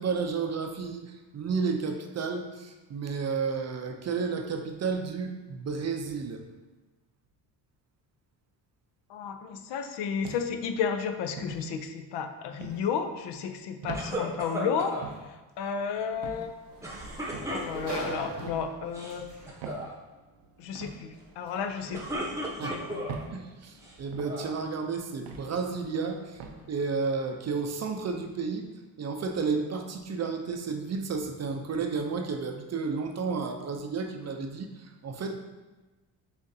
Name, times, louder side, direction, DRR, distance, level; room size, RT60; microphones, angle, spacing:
voice 1, 0.0-6.4 22.6-22.9 23.3-26.4 26.7-28.7 29.0-35.3, right 5 dB, 40° right, 5 dB, 0.5 m, -32 dB
voice 2, 9.1-14.9 15.3-16.5 17.5-19.3 20.6-23.0, left 6 dB, 70° left, 7 dB, 0.6 m, -32 dB
sound 1, 10.2-10.7 11.4-11.6 12.6-12.8 13.8-14.1 15.0-15.3 16.2-16.5 17.3-17.6 18.4-18.6 19.6-19.9 20.7-21.0 21.9-22.1 23.1-23.3 24.1-24.4 25.3-25.5 26.4-26.6, right 5 dB, 85° right, 0.7 m, -40 dB
sound 2, 13.9-15.1 16.8-18.1 18.8-19.2 19.5-19.9 21.7-23.2 23.8-24.6, equal, 5° right, 0.8 m, -35 dB
Sliding door, 15.6-28.2, right 4 dB, 65° right, 1.0 m, -46 dB
6.5 x 2.5 x 2.7 m, 1.2 s
cardioid pair, 80°, 44 cm